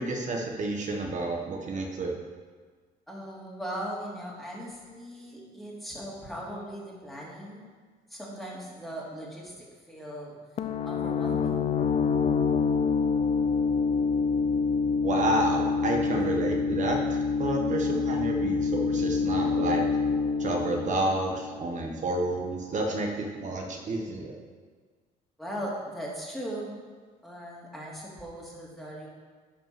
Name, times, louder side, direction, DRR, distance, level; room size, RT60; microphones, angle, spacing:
voice 1, 0.0-2.1 15.0-19.9 20.4-24.3, right 2 dB, 45° right, 1 dB, 1.6 m, -30 dB
voice 2, 3.1-7.7 8.1-10.3 10.8-11.7 17.6-17.8 25.4-26.7 27.2-29.1, equal, ahead, -4 dB, 2.7 m, -39 dB
sound 1, 10.6-22.1, left 5 dB, 40° left, 0.5 m, -27 dB
10.5 x 5.4 x 6.1 m, 1.5 s
cardioid pair, 110°, 17 cm